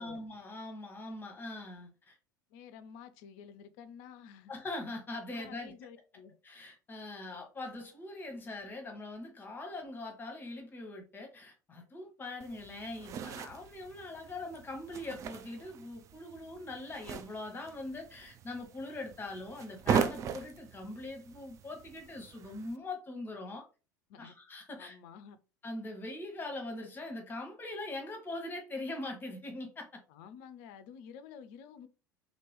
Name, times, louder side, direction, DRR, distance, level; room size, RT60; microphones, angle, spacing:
voice 1, 0.0-2.2 4.5-5.7 6.4-23.6 24.2-25.0 25.6-30.0, left 2 dB, 20° left, 1.0 m, -42 dB
voice 2, 2.5-4.5 5.3-6.3 24.1-24.3 24.8-25.4 30.1-31.9, left 7 dB, 50° left, 0.4 m, -51 dB
sound 1, 12.4-22.8, right 7 dB, 30° right, 0.3 m, -39 dB
2.9 x 2.8 x 3.0 m
figure-of-eight pair, 75°, 10 cm